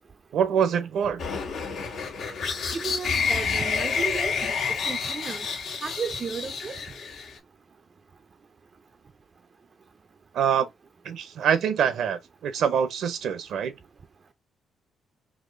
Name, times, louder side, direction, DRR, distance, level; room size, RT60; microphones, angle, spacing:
voice 1, 0.3-1.2 10.3-10.7 11.0-13.7, right 8 dB, 75° right, 0.7 m, -25 dB
sound 1, 1.2-7.4, left 5 dB, 75° left, 1.2 m, -29 dB
voice 2, 2.7-4.3 4.9-5.5 5.8-6.8, right 5 dB, 40° right, 0.4 m, -33 dB
4.1 x 2.9 x 2.6 m
cardioid pair, 90°, 0 cm